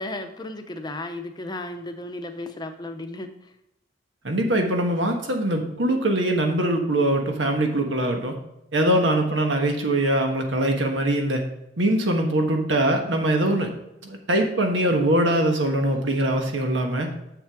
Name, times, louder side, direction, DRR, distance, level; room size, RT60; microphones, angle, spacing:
voice 1, 0.0-3.3 8.9-9.1, left 2 dB, 25° left, 6 dB, 0.7 m, -34 dB
voice 2, 4.2-8.3 8.7-11.4 11.8-13.7 14.0-17.1, right 1 dB, 85° right, 3 dB, 1.4 m, -22 dB
7.2 x 6.8 x 3.6 m, 0.85 s
head